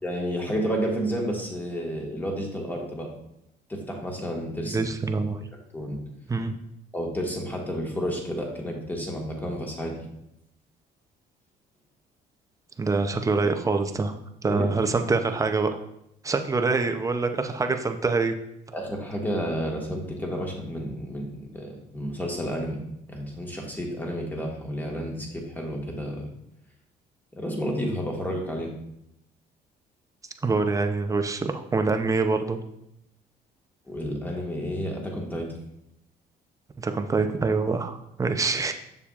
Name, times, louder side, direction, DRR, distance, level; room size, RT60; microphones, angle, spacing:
voice 1, 0.0-3.1 3.7-4.9 5.7-6.0 6.9-10.0 14.5-14.7 18.7-22.8 23.1-26.3 27.3-28.7 33.9-35.5, equal, 10° left, 0 dB, 1.6 m, -31 dB
voice 2, 4.7-5.4 6.3-6.6 12.8-14.1 14.4-15.7 16.2-18.3 30.4-32.6 36.8-38.7, right 3 dB, 20° right, 6 dB, 0.6 m, -25 dB
7.1 x 6.8 x 2.4 m, 0.79 s
cardioid pair, 110°, 17 cm